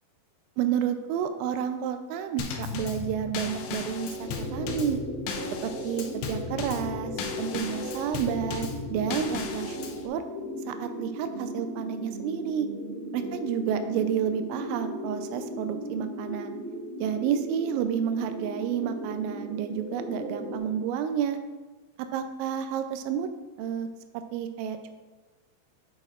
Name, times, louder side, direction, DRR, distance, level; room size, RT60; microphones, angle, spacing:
voice 1, 0.6-5.0 5.6-7.1 7.4-9.8 10.0-10.2 10.7-12.7 13.1-16.6 17.0-21.4 22.1-23.3 23.6-23.9 24.1-24.9, right 8 dB, 85° right, 8 dB, 2.9 m, -30 dB
Drum kit / Snare drum / Bass drum, 2.4-10.1, left 6 dB, 80° left, 2.6 m, -36 dB
sound 1, 4.2-20.6, equal, 55° right, 4.4 m, -37 dB
8.7 x 8.6 x 2.4 m, 1.3 s
omnidirectional pair, 5.4 m